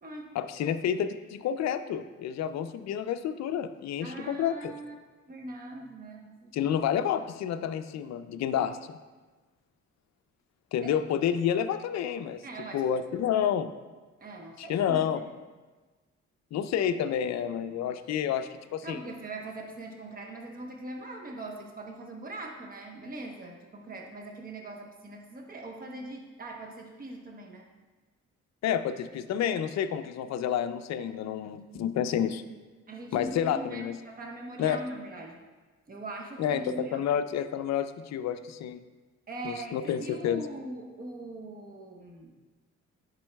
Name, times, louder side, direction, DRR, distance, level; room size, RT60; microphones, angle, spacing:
voice 1, 0.3-4.7 6.5-8.8 10.7-12.4 12.7-13.7 14.6-15.2 16.5-19.0 28.6-32.4 33.1-34.0 34.6-34.8 36.4-38.8 39.4-40.4, left 9 dB, 65° left, 10 dB, 0.5 m, -29 dB
voice 2, 4.0-4.9 5.3-6.7 10.8-10.9 12.4-12.8 14.2-15.1 18.8-27.7 32.9-35.4 35.9-37.1 39.3-42.3, right 2 dB, 30° right, 1 dB, 1.0 m, -41 dB
10.5 x 5.3 x 2.3 m, 1.3 s
cardioid pair, 90°, 30 cm